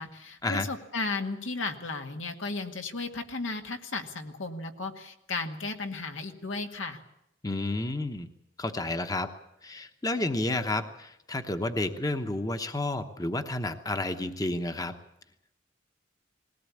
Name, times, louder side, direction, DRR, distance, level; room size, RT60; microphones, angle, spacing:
voice 1, 0.0-7.0, left 3 dB, 85° left, 4 dB, 2.0 m, -35 dB
voice 2, 7.4-8.3 8.6-9.3 9.6-14.9, left 2 dB, 20° left, 8 dB, 0.9 m, -31 dB
20.0 x 17.5 x 8.5 m, 0.81 s
head